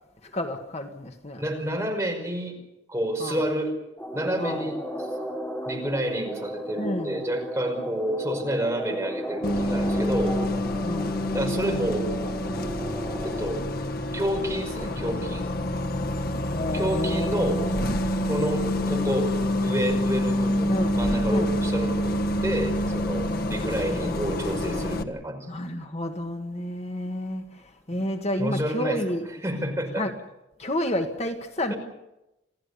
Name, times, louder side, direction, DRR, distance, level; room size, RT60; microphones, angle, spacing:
voice 1, 0.3-1.4 3.2-3.4 4.4-4.7 6.8-7.2 10.8-11.3 16.5-17.8 20.7-21.0 21.3-21.6 25.5-27.4 27.9-29.2 30.0-30.1 30.6-31.7, left 1 dB, 35° left, 1.7 m, -30 dB
voice 2, 1.4-2.6 2.9-3.7 4.1-5.1 5.6-10.4 11.3-12.1 13.2-13.7 14.1-15.4 16.7-17.6 18.2-19.3 19.6-25.5 28.4-29.0 29.4-30.1 31.7-31.8, equal, 15° right, 5.4 m, -29 dB
sound 1, 4.0-13.5, equal, 10° left, 4.4 m, -35 dB
Bus, 9.4-25.0, left 1 dB, 50° left, 1.4 m, -27 dB
27.5 x 16.5 x 8.4 m
head